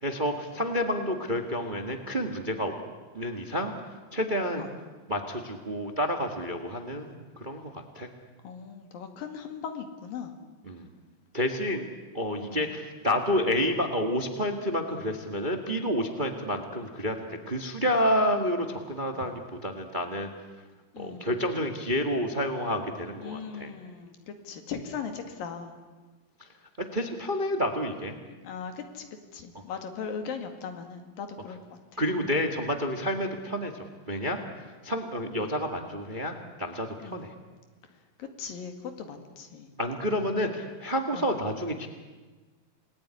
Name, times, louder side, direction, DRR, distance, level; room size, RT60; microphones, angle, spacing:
voice 1, 0.0-2.7 3.1-3.7 4.1-4.7 5.1-8.1 10.6-10.9 11.3-11.8 12.1-20.3 21.0-23.7 26.8-28.1 29.5-29.6 32.0-34.4 34.8-37.3 39.8-41.9, equal, 25° right, 5 dB, 1.0 m, -29 dB
voice 2, 8.4-10.3 12.5-12.7 19.1-19.3 20.9-21.3 23.2-25.7 28.3-29.0 29.3-32.0 35.4-35.6 37.0-37.3 38.2-39.7 40.4-40.5 41.1-41.3, left 6 dB, 85° left, 6 dB, 3.9 m, -39 dB
28.0 x 19.5 x 9.9 m, 1.3 s
omnidirectional pair, 3.9 m